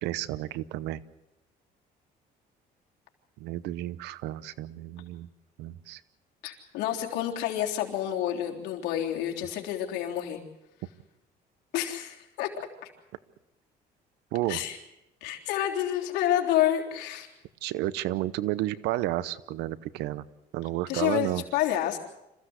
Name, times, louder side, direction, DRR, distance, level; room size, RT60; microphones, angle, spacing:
voice 1, 0.0-1.0 3.4-5.3 5.6-6.0 14.3-14.6 17.6-20.2 20.5-21.4, right 15 dB, 90° right, 17 dB, 0.9 m, -31 dB
voice 2, 6.4-10.4 11.7-12.5 12.8-12.9 14.5-14.8 15.2-17.3 20.9-22.0, left 12 dB, 85° left, 0 dB, 3.6 m, -29 dB
27.0 x 15.5 x 8.0 m, 0.94 s
cardioid pair, 110°, 17 cm